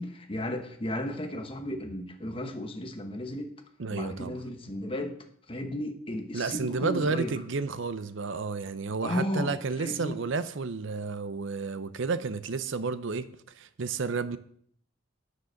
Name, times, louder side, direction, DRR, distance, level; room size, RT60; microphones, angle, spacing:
voice 1, 0.0-3.5 3.9-5.2 5.5-7.4 9.0-10.2, left 1 dB, 25° left, 1.0 m, -34 dB
voice 2, 3.8-4.4 6.3-14.4, right 4 dB, 70° right, 0.6 m, -31 dB
9.5 x 6.5 x 6.4 m
head